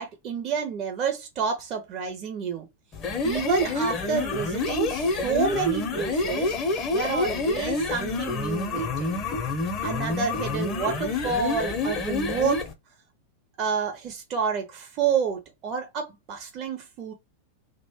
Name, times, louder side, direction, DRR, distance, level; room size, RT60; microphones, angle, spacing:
voice 1, 0.0-2.7 3.2-6.5 6.9-9.2 9.8-12.6 13.6-17.1, right 6 dB, 35° right, 0.6 m, -29 dB
sound 1, 2.9-12.7, left 3 dB, 30° left, 0.6 m, -28 dB
2.4 x 2.1 x 3.4 m
figure-of-eight pair, 90°, 0 cm